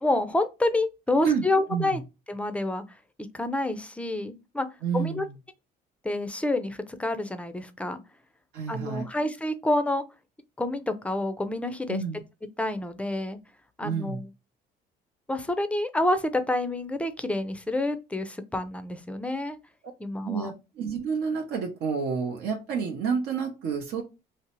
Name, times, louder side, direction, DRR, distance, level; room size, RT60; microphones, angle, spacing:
voice 1, 0.0-2.0 2.3-2.8 3.3-4.7 4.9-5.3 6.0-8.0 8.7-10.0 10.6-12.0 12.6-13.4 13.8-14.3 15.3-19.6 20.0-20.5, left 2 dB, 5° left, 0.4 m, -28 dB
voice 2, 1.2-2.0 4.8-5.4 8.5-9.1 11.9-12.2 13.8-14.2 20.2-24.0, right 6 dB, 75° right, 0.6 m, -29 dB
2.7 x 2.0 x 2.9 m
cardioid pair, 110°, 17 cm